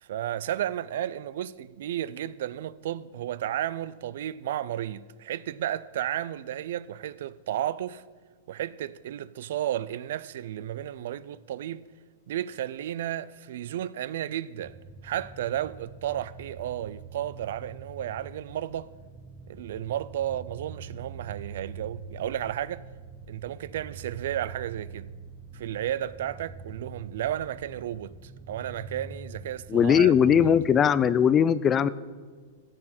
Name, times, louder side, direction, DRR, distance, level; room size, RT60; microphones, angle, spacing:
voice 1, 0.0-8.0 8.5-11.9 12.3-14.8 15.0-18.9 19.5-22.9 23.3-25.1 25.5-30.6, right 11 dB, 70° right, 0.3 m, -33 dB
sound 1, 14.6-30.7, right 4 dB, 5° right, 1.2 m, -44 dB
voice 2, 29.7-31.9, left 8 dB, 25° left, 0.3 m, -20 dB
15.0 x 7.6 x 4.3 m
hypercardioid pair, 140°, 0 cm